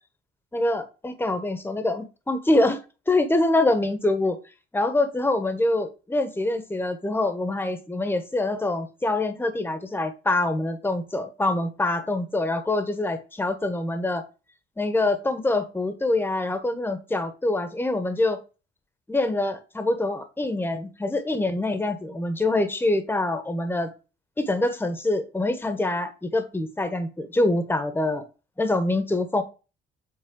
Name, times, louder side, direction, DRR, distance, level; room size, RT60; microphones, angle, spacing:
voice 1, 0.5-2.8 3.1-4.4 4.7-14.2 14.8-18.4 19.1-23.9 24.4-28.2 28.6-29.4, left 2 dB, 10° left, 1.1 m, -25 dB
7.7 x 4.0 x 3.8 m
cardioid pair, 90°, 20 cm